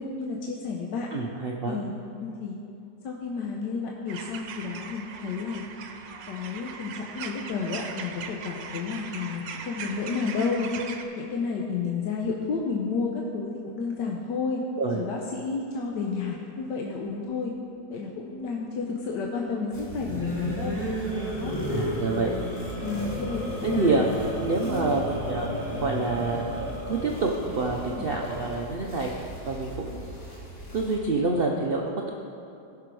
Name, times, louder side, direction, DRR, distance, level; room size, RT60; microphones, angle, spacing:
voice 1, 0.0-1.1 1.7-1.9 2.2-2.6 3.0-5.6 6.3-10.7 11.2-14.6 14.9-17.5 17.9-20.8 21.1-21.5 22.8-23.4 23.7-24.1 24.6-24.9 27.9-28.1, left 4 dB, 75° left, -1 dB, 1.4 m, -31 dB
voice 2, 1.1-1.8 14.8-15.0 20.4-21.1 21.7-22.3 23.6-24.1 24.4-25.5 25.8-30.1 30.7-32.1, right 3 dB, 70° right, 0 dB, 0.5 m, -28 dB
sound 1, 4.1-11.0, right 6 dB, 90° right, 1.5 m, -39 dB
sound 2, 19.7-31.0, right 1 dB, 30° left, 2.7 m, -41 dB
sound 3, 20.0-28.7, equal, 10° left, 1.7 m, -33 dB
16.0 x 6.1 x 4.7 m, 2.6 s
omnidirectional pair, 1.9 m